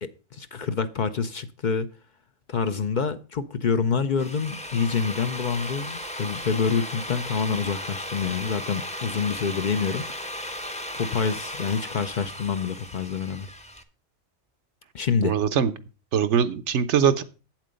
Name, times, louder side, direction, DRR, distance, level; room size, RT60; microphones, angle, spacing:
voice 1, 0.0-1.9 2.5-10.0 10.9-13.5 14.9-15.3, left 6 dB, 50° left, 0.6 m, -27 dB
Drill, 4.0-13.8, left 1 dB, 5° left, 0.6 m, -36 dB
voice 2, 15.2-15.7 16.1-17.2, right 7 dB, 85° right, 1.1 m, -22 dB
8.5 x 7.5 x 5.1 m
omnidirectional pair, 1.2 m